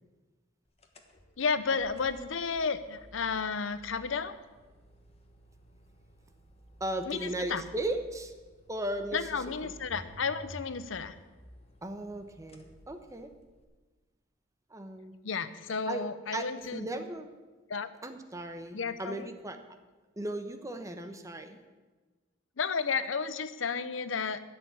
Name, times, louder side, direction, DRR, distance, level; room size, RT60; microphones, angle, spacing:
sound 1, 0.8-13.6, equal, 30° left, 1.3 m, -54 dB
voice 1, 1.4-4.3 7.1-7.6 9.1-11.2 15.2-16.9 17.7-17.9 18.7-19.3 22.6-24.4, left 5 dB, 70° left, 13 dB, 0.7 m, -32 dB
voice 2, 6.8-8.3 8.7-9.2 9.6-9.7 11.8-13.3 14.7-15.1 15.9-16.1 16.3-16.5 16.7-17.3 18.0-19.6 20.2-21.6, right 1 dB, 15° right, 7 dB, 1.0 m, -36 dB
12.0 x 6.8 x 8.7 m, 1.3 s
head